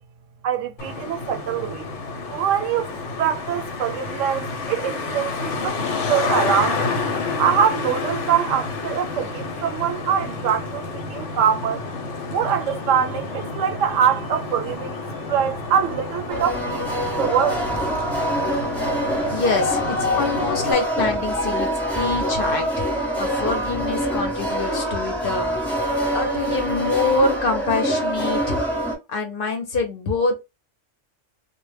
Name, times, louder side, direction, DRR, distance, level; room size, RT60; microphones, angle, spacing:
voice 1, 0.4-1.9 2.3-7.0 7.4-11.8 12.3-15.0 15.3-17.6, right 8 dB, 90° right, 0.9 m, -23 dB
Traffic noise roadway noise, 0.8-20.7, left 3 dB, 80° left, 0.9 m, -29 dB
sound 1, 16.3-29.0, equal, ahead, 0.6 m, -25 dB
voice 2, 19.3-21.7 21.9-22.8 23.2-25.6 26.1-28.6 29.1-30.4, left 3 dB, 55° left, 0.7 m, -25 dB
2.1 x 2.0 x 3.1 m
omnidirectional pair, 1.3 m